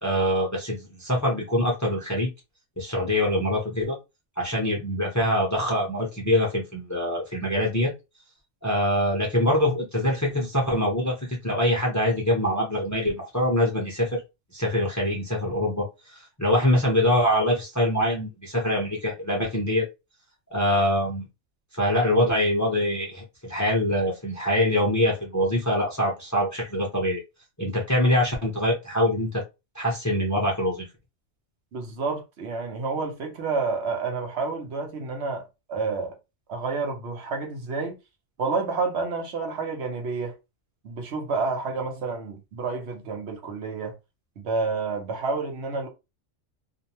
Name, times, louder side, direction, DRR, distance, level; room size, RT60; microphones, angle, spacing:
voice 1, 0.0-2.3 2.8-4.0 4.4-7.9 8.6-14.2 14.5-19.9 20.5-21.2 21.7-27.2 27.6-29.4 29.7-30.8, left 1 dB, 20° left, 0.6 m, -24 dB
voice 2, 31.7-36.1 36.5-38.0 38.4-40.3 40.8-43.9 44.4-45.9, right 4 dB, 70° right, 1.0 m, -29 dB
2.6 x 2.1 x 2.8 m
omnidirectional pair, 1.2 m